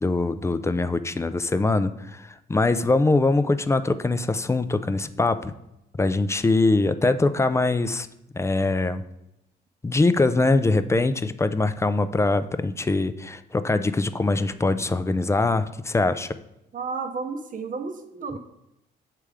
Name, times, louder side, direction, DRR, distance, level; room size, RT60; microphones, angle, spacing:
voice 1, 0.0-5.5 6.0-8.1 8.3-9.0 9.8-16.4, left 3 dB, 15° left, 11 dB, 0.3 m, -23 dB
voice 2, 16.7-18.4, right 4 dB, 40° right, 5 dB, 0.7 m, -32 dB
7.2 x 3.4 x 4.8 m, 0.86 s
cardioid pair, 90°, 20 cm